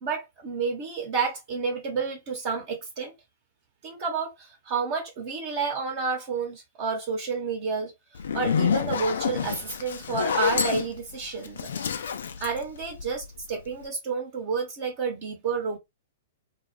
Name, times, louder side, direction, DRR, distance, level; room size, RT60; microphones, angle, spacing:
voice 1, 0.0-3.1 3.8-7.9 8.3-11.7 12.4-15.8, right 5 dB, 45° right, 0.9 m, -30 dB
Zipper (clothing), 8.2-13.4, left 6 dB, 70° left, 0.4 m, -28 dB
2.2 x 2.0 x 3.1 m
figure-of-eight pair, 110°, 0 cm